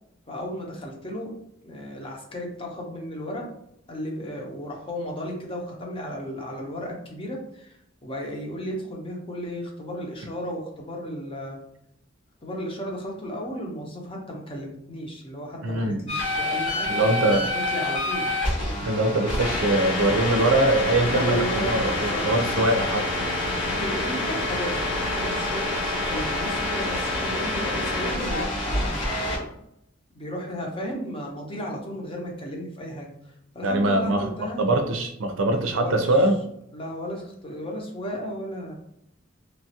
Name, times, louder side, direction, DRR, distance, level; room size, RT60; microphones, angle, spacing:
voice 1, 0.3-1.3 1.6-3.5 3.9-11.6 12.4-17.1 17.4-18.3 21.1-22.7 23.1-29.0 30.1-34.7 35.5-36.3 36.7-38.7, equal, 30° left, 0 dB, 0.7 m, -34 dB
voice 2, 15.6-16.0 16.9-17.4 18.8-23.0 33.6-34.2 34.6-36.4, right 1 dB, 75° right, 5 dB, 0.5 m, -22 dB
sound 1, 16.1-29.4, left 2 dB, 70° left, 1.3 m, -27 dB
3.1 x 2.3 x 2.8 m, 0.76 s
head